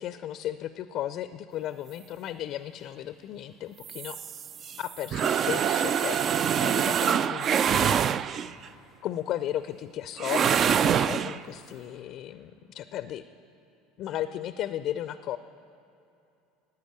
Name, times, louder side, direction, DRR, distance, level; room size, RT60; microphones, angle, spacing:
voice 1, 0.0-4.2 4.8-8.0 8.3-8.4 9.0-13.2 14.0-15.4, left 12 dB, 55° left, 13 dB, 0.4 m, -35 dB
sound 1, 3.8-8.6 10.2-11.4, right 8 dB, 40° right, 0.3 m, -25 dB
13.0 x 9.2 x 9.0 m, 2.7 s
hypercardioid pair, 75°, 0 cm